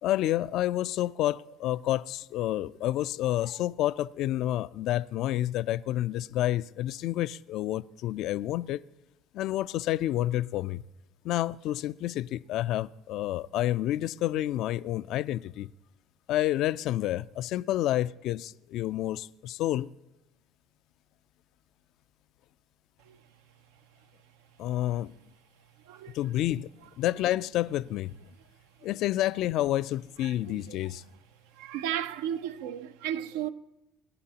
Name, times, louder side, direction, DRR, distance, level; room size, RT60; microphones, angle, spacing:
voice 1, 0.0-8.8 9.3-10.8 11.2-15.7 16.3-19.9 24.6-25.1 26.1-26.7 27.0-28.1 28.8-31.0, left 14 dB, 65° left, 0.3 m, -29 dB
voice 2, 30.2-30.8 31.6-33.5, right 10 dB, 85° right, 0.5 m, -34 dB
22.0 x 11.0 x 2.9 m
supercardioid pair, 75°, 0 cm